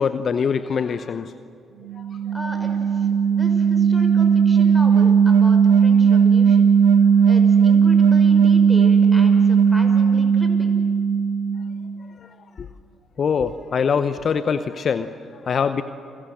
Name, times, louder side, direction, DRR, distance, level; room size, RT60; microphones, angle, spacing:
voice 1, 0.0-1.4 2.0-2.1 12.2-12.7 13.2-15.8, left 6 dB, 55° left, 12 dB, 0.8 m, -24 dB
sound 1, 1.9-12.0, right 6 dB, 85° right, 1.2 m, -16 dB
voice 2, 2.3-6.7 7.2-10.7, equal, 10° left, 5 dB, 6.2 m, -36 dB
29.5 x 21.5 x 8.0 m, 2.6 s
hypercardioid pair, 45°, 0 cm